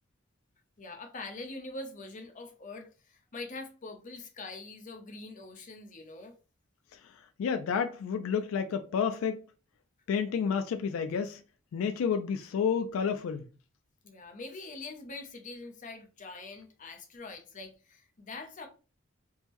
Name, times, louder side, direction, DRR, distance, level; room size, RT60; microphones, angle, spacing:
voice 1, 0.8-6.3 14.0-18.7, left 3 dB, 40° left, 0.6 m, -44 dB
voice 2, 7.4-9.4 10.1-11.4 11.7-13.4, left 6 dB, 80° left, 0.3 m, -30 dB
3.5 x 2.1 x 2.9 m
head